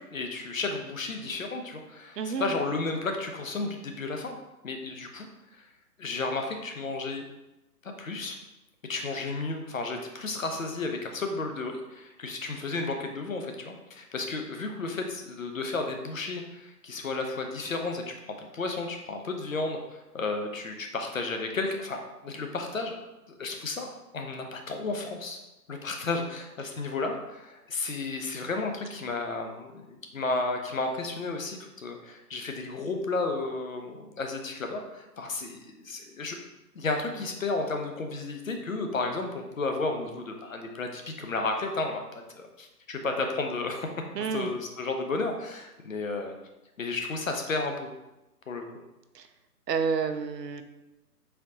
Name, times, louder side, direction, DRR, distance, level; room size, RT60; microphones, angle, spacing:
voice 1, 0.0-4.4 4.6-5.3 6.0-7.2 7.8-8.4 8.9-23.0 23.4-25.4 25.7-36.4 36.7-43.9 44.3-46.4 46.8-47.9 48.5-48.6, left 3 dB, 55° left, 4 dB, 0.7 m, -33 dB
voice 2, 2.2-2.5 44.1-44.5 49.1-49.3 49.7-50.6, right 6 dB, 80° right, 8 dB, 0.7 m, -29 dB
4.3 x 3.8 x 2.7 m, 0.99 s
hypercardioid pair, 175°, 48 cm